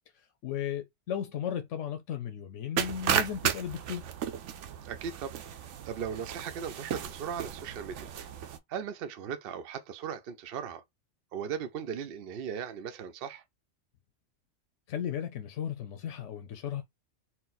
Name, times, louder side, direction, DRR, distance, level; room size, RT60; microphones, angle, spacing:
voice 1, 0.1-4.1 14.9-16.8, left 9 dB, 90° left, 1.0 m, -35 dB
sound 1, 2.8-8.6, right 9 dB, 85° right, 1.0 m, -34 dB
voice 2, 4.8-5.4 5.8-8.1 8.7-10.8 11.3-13.4, right 7 dB, 60° right, 0.7 m, -37 dB
4.4 x 2.1 x 3.9 m
omnidirectional pair, 1.2 m